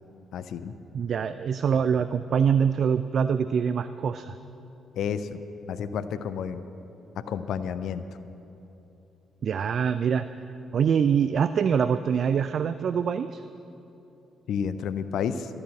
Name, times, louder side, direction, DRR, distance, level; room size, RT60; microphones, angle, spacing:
voice 1, 0.3-0.7 5.0-5.4 5.7-6.6 7.3-8.0 14.5-15.5, left 7 dB, 60° left, 12 dB, 0.5 m, -30 dB
voice 2, 0.9-4.4 9.4-10.3 10.7-13.4, right 7 dB, 50° right, 12 dB, 0.3 m, -24 dB
13.0 x 9.7 x 7.5 m, 2.9 s
figure-of-eight pair, 40°, 0 cm